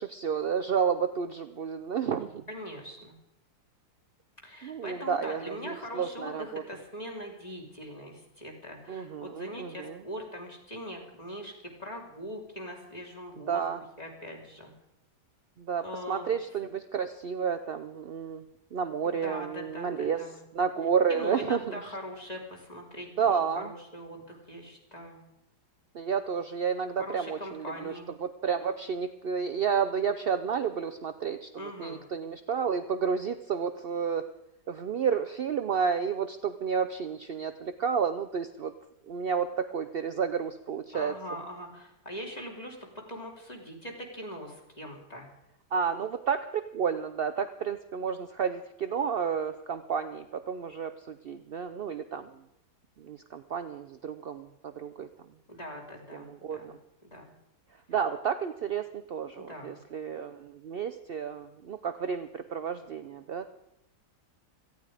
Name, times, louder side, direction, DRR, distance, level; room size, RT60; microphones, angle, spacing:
voice 1, 0.0-2.4 4.6-6.6 8.9-10.0 13.5-13.8 15.6-18.4 18.7-20.2 20.5-21.8 23.2-23.7 25.9-27.9 28.2-34.3 34.7-38.7 39.1-41.1 45.7-52.3 53.0-55.1 56.1-56.7 57.9-63.5, right 7 dB, 65° right, 9 dB, 0.5 m, -31 dB
voice 2, 2.5-3.2 4.4-13.7 14.0-14.7 15.8-16.3 19.0-20.4 21.1-25.3 27.0-28.1 31.6-32.0 40.9-45.3 55.5-56.7 57.1-57.3 59.3-59.8, equal, 25° left, 0 dB, 3.1 m, -41 dB
18.0 x 14.0 x 4.9 m, 0.85 s
omnidirectional pair, 1.8 m